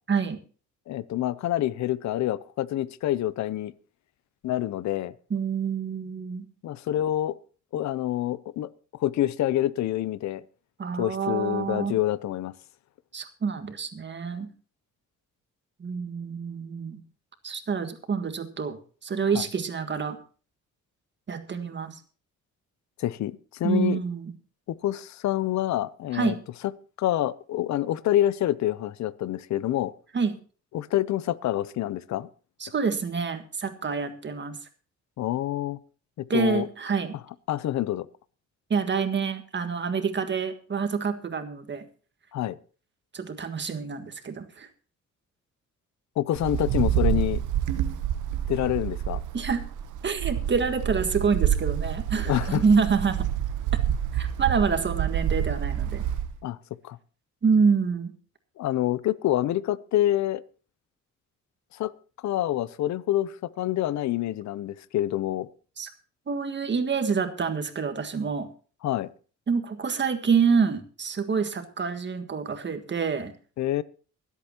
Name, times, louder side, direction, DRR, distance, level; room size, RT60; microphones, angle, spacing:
voice 1, 0.1-0.4 5.3-6.5 10.8-12.0 13.1-14.5 15.8-17.0 17.4-20.2 21.3-22.0 23.6-24.3 26.1-26.4 30.1-30.4 32.6-34.6 36.3-37.1 38.7-41.8 43.1-44.7 49.3-49.6 50.0-53.3 53.7-53.8 54.1-56.0 57.4-58.1 65.8-65.9 66.3-68.5 69.5-73.3, right 5 dB, 40° right, 1.7 m, -27 dB
voice 2, 0.9-3.7 4.4-5.1 6.6-7.4 7.7-8.7 9.0-10.4 11.0-12.5 19.3-19.5 23.0-24.0 24.7-26.3 27.0-29.9 30.7-32.3 35.2-35.8 36.2-36.7 37.5-38.1 42.3-42.6 46.2-47.4 48.5-49.2 52.3-52.6 56.4-56.6 56.8-57.0 58.6-60.4 61.7-61.9 62.2-65.5 68.8-69.1 73.6-73.8, left 13 dB, 65° left, 0.7 m, -27 dB
Wind, 46.4-56.4, right 10 dB, 80° right, 1.0 m, -28 dB
24.0 x 8.2 x 2.9 m
cardioid pair, 90°, 30 cm